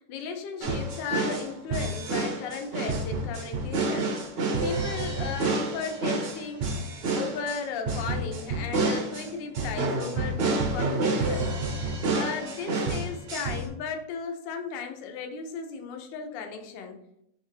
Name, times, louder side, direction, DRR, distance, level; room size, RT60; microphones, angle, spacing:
voice 1, 0.0-4.2 4.6-6.6 7.1-11.5 12.1-17.0, left 5 dB, 80° left, 5 dB, 1.3 m, -35 dB
sound 1, 0.6-13.7, right 2 dB, 70° right, 0.5 m, -29 dB
4.0 x 3.3 x 3.1 m, 0.78 s
omnidirectional pair, 2.0 m